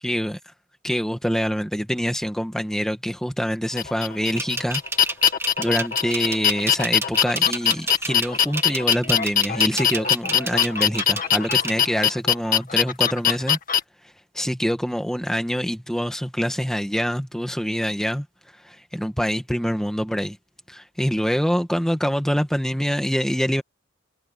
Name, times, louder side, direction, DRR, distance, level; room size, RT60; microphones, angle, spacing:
voice 1, 0.0-0.4 0.8-4.8 5.6-13.6 14.3-18.2 18.6-20.4 20.7-23.6, equal, 5° left, 1.6 m, -25 dB
sound 1, 3.8-13.8, left 9 dB, 45° left, 2.0 m, -21 dB
sound 2, 4.4-11.7, right 3 dB, 10° right, 1.7 m, -30 dB
head